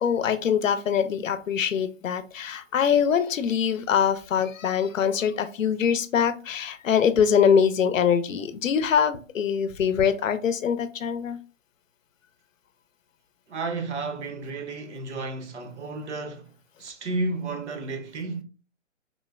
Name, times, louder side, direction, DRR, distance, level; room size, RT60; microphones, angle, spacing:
voice 1, 0.0-11.4, left 7 dB, 80° left, 0.6 m, -23 dB
voice 2, 13.5-16.5 16.8-18.4, right 3 dB, 60° right, 0.8 m, -32 dB
3.7 x 2.0 x 2.3 m
hypercardioid pair, 150°, 38 cm